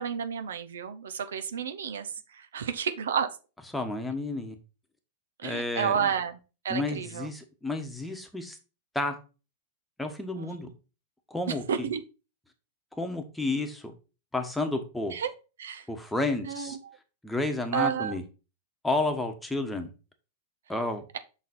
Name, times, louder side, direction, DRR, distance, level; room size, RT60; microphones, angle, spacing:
voice 1, 0.0-2.1 2.3-3.3 5.4-6.4 6.6-7.3 10.4-10.7 11.5-12.0 15.1-15.3 15.6-15.8 16.5-17.0 17.7-18.2, right 7 dB, 80° right, 0.7 m, -31 dB
voice 2, 3.7-4.6 5.4-6.1 6.7-8.6 8.9-9.2 10.0-10.7 11.3-11.9 12.9-13.9 14.3-15.2 15.9-16.8 17.2-18.2 18.8-19.9 20.7-21.0, left 2 dB, 5° left, 1.1 m, -31 dB
5.8 x 4.1 x 4.2 m
hypercardioid pair, 115°, 0 cm